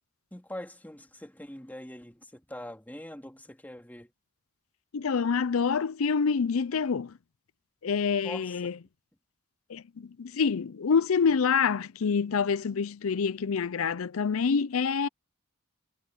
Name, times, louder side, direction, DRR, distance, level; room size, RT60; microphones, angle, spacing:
voice 1, 0.3-4.1 8.2-8.7, left 1 dB, 10° left, 2.5 m, -43 dB
voice 2, 4.9-7.1 7.8-8.7 9.7-15.1, left 5 dB, 70° left, 0.5 m, -27 dB
head